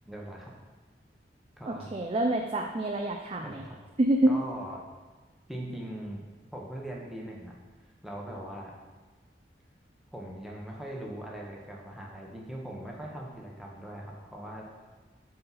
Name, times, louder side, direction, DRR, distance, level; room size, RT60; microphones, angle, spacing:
voice 1, 0.1-0.5 1.6-1.9 3.4-3.8 4.3-4.8 5.5-6.2 6.5-7.5 8.0-8.7 10.1-14.7, right 1 dB, ahead, -2 dB, 1.1 m, -40 dB
voice 2, 1.7-3.6 4.0-4.3, right 1 dB, 35° right, 1 dB, 0.5 m, -27 dB
11.5 x 4.3 x 4.1 m, 1.3 s
head